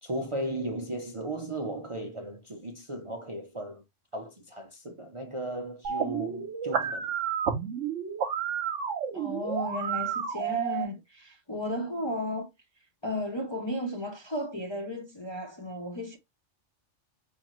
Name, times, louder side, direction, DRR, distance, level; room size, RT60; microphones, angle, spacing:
voice 1, 0.0-3.8 4.1-7.1, right 1 dB, 35° right, 0.5 m, -36 dB
sound 1, 5.8-10.8, right 8 dB, 75° right, 1.1 m, -31 dB
voice 2, 9.1-12.5 13.0-16.2, left 1 dB, 30° left, 0.5 m, -34 dB
5.0 x 2.7 x 3.0 m
omnidirectional pair, 1.3 m